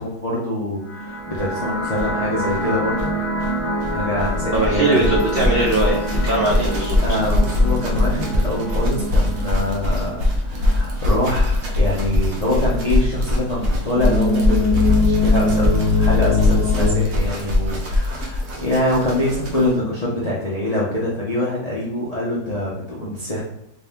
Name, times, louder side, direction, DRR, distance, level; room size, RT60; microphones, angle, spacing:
voice 1, 0.0-3.1 3.9-5.2 7.0-23.4, left 1 dB, 85° left, -7 dB, 0.3 m, -24 dB
sound 1, 0.8-11.8, right 1 dB, 40° left, 0.9 m, -28 dB
sound 2, 1.3-1.4 1.6-1.7 1.9-19.8, left 1 dB, 55° right, 1.0 m, -22 dB
voice 2, 4.5-7.0, right 2 dB, 85° right, -4 dB, 0.5 m, -20 dB
sound 3, 13.9-16.9, left 4 dB, 70° left, 1.2 m, -19 dB
3.8 x 2.6 x 3.5 m, 0.82 s
omnidirectional pair, 2.0 m